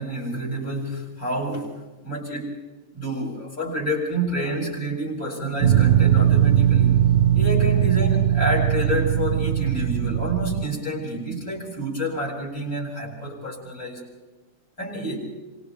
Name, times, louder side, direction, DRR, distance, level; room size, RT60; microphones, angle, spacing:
voice 1, 0.0-2.5 2.9-7.0 7.3-14.1 14.8-15.3, equal, 40° left, 0 dB, 7.8 m, -28 dB
sound 1, 5.6-10.7, right 10 dB, 60° right, 1.1 m, -19 dB
29.5 x 27.0 x 3.5 m, 1.2 s
omnidirectional pair, 2.3 m